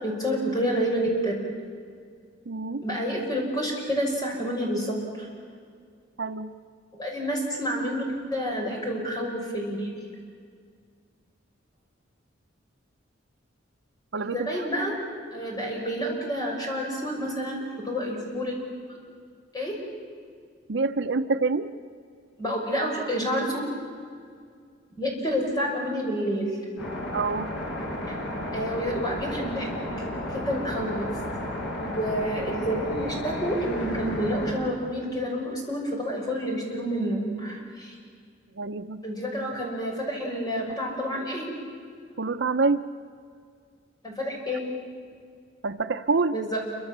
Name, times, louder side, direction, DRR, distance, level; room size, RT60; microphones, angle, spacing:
voice 1, 0.0-1.4 2.8-5.3 7.0-9.9 14.2-14.9 15.3-18.6 18.9-19.0 19.5-19.8 22.4-23.6 25.0-26.5 28.5-29.7 30.3-31.1 31.8-38.0 39.0-41.5 44.0-44.6 46.3-46.6, equal, 20° left, -1 dB, 6.1 m, -29 dB
voice 2, 2.5-2.8 6.2-6.5 14.1-14.6 20.7-21.7 27.1-27.5 38.6-39.0 42.2-42.8 45.6-46.3, right 4 dB, 65° right, 9 dB, 0.8 m, -26 dB
sound 1, 26.8-34.5, left 1 dB, 65° left, 6.1 m, -32 dB
28.0 x 24.5 x 7.5 m, 2.1 s
head